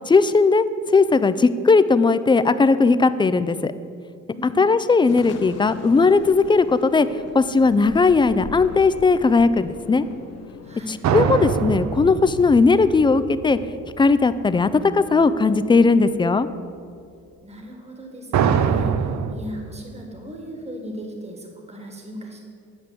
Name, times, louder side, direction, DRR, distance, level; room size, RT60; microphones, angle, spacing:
voice 1, 0.1-3.7 4.6-7.1 7.3-10.1 11.1-13.6 14.0-16.5, left 4 dB, 15° left, 13 dB, 0.3 m, -17 dB
voice 2, 4.3-4.6 10.6-11.0 17.4-22.4, equal, 20° right, 2 dB, 1.5 m, -37 dB
sound 1, 5.0-12.7, left 5 dB, 55° left, 0.8 m, -41 dB
sound 2, 11.0-14.1 18.3-19.4, right 7 dB, 65° right, 0.6 m, -23 dB
8.9 x 5.1 x 7.5 m, 2.3 s
cardioid pair, 90°, 30 cm